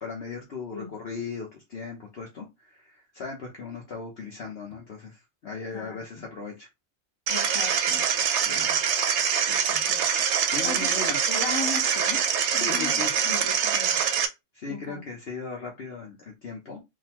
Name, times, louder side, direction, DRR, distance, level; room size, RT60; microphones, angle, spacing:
voice 1, 0.0-6.7 10.5-11.3 12.5-13.2 14.5-16.8, left 4 dB, 55° left, 1.0 m, -37 dB
voice 2, 5.7-6.3 7.3-8.1 8.5-8.8 9.5-10.1 10.6-12.3 12.5-14.0 14.7-15.0, left 4 dB, 30° left, 0.5 m, -38 dB
sound 1, 7.3-14.3, right 7 dB, 65° right, 0.8 m, -24 dB
3.8 x 2.5 x 2.9 m
omnidirectional pair, 1.4 m